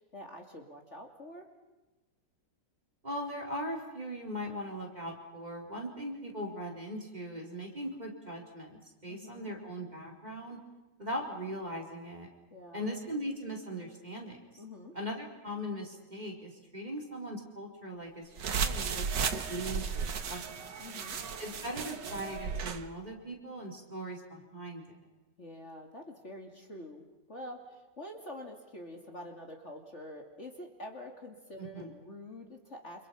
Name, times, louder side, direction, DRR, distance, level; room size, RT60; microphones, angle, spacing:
voice 1, 0.0-1.5 9.1-9.5 12.5-12.8 14.6-14.9 20.8-21.2 25.4-33.1, left 1 dB, 40° left, 2 dB, 3.1 m, -46 dB
voice 2, 3.0-10.6 11.0-12.3 12.7-14.4 14.9-20.4 21.4-24.8 31.6-32.0, equal, 25° right, 0 dB, 4.4 m, -40 dB
sound 1, 18.4-22.8, right 6 dB, 80° right, 2.1 m, -34 dB
29.0 x 27.5 x 5.8 m, 1.1 s
omnidirectional pair, 1.9 m